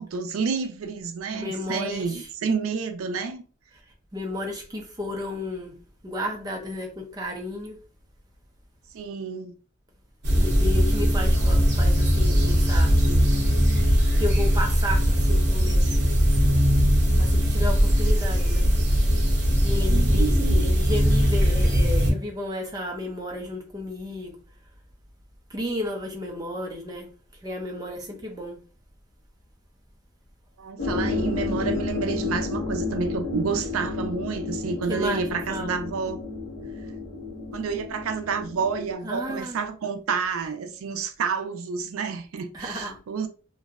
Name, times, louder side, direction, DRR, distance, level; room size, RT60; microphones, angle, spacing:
voice 1, 0.0-3.4 8.9-9.5 11.0-11.6 19.9-20.7 30.6-36.2 37.5-43.3, right 5 dB, 90° right, 0.4 m, -29 dB
voice 2, 1.3-2.3 4.1-5.7 6.0-7.8 10.3-13.3 14.2-15.9 17.2-18.7 19.6-24.3 25.5-27.1 27.4-28.6 34.9-35.7 39.0-39.6 42.5-43.0, left 1 dB, 20° right, 0.4 m, -33 dB
sound 1, 10.2-22.1, equal, 50° right, 0.7 m, -20 dB
sound 2, 30.8-38.9, left 3 dB, 45° left, 0.6 m, -31 dB
2.6 x 2.0 x 2.4 m
head